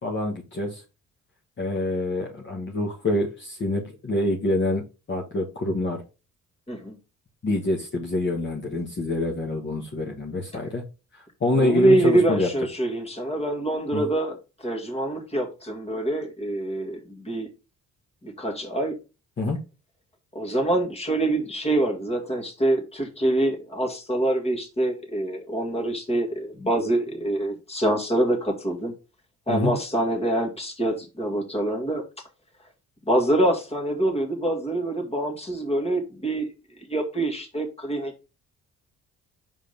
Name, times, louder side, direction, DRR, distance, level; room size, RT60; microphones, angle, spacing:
voice 1, 0.0-0.8 1.6-4.8 5.1-6.0 7.4-10.8 11.1-12.5 13.9-14.0 19.4-19.6 29.5-29.7, left 2 dB, 40° left, -1 dB, 1.4 m, -26 dB
voice 2, 11.6-14.4 14.6-17.5 18.2-18.9 20.3-28.9 29.5-32.0 33.1-36.5 36.9-38.3, right 1 dB, 20° left, 2 dB, 2.0 m, -25 dB
5.0 x 3.8 x 5.0 m, 0.30 s
cardioid pair, 90°, 30 cm